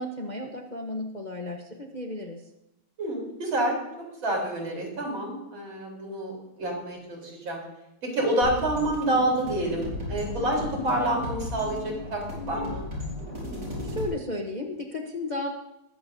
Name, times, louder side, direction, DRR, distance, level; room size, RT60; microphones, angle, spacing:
voice 1, 0.0-2.4 13.8-15.5, left 1 dB, 35° left, 1 dB, 0.8 m, -34 dB
voice 2, 3.0-3.8 4.2-7.6 8.0-12.2 12.5-12.8, right 1 dB, 80° right, -1 dB, 4.6 m, -28 dB
sound 1, 8.4-14.1, left 2 dB, 50° right, 6.1 m, -35 dB
20.0 x 14.5 x 2.7 m, 0.89 s
omnidirectional pair, 2.1 m